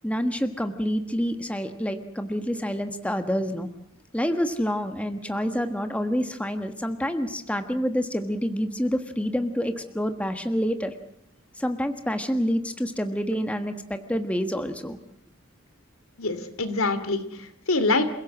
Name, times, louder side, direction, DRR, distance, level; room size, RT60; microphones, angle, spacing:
voice 1, 0.0-3.7 4.1-10.9 11.6-15.0, equal, 5° left, 7 dB, 1.4 m, -27 dB
voice 2, 16.2-18.0, left 3 dB, 80° left, 11 dB, 2.7 m, -25 dB
28.5 x 16.5 x 7.5 m, 0.75 s
head